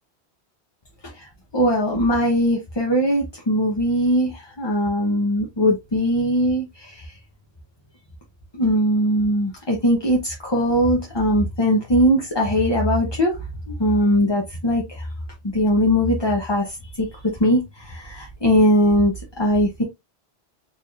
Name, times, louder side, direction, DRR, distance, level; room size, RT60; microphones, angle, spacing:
voice 1, 1.5-6.7 8.5-13.3 13.8-14.8 15.5-16.7 17.0-17.1 17.4-17.6 17.9-19.8, equal, 30° left, 0.6 m, -20 dB
4.2 x 3.1 x 2.3 m
omnidirectional pair, 1.1 m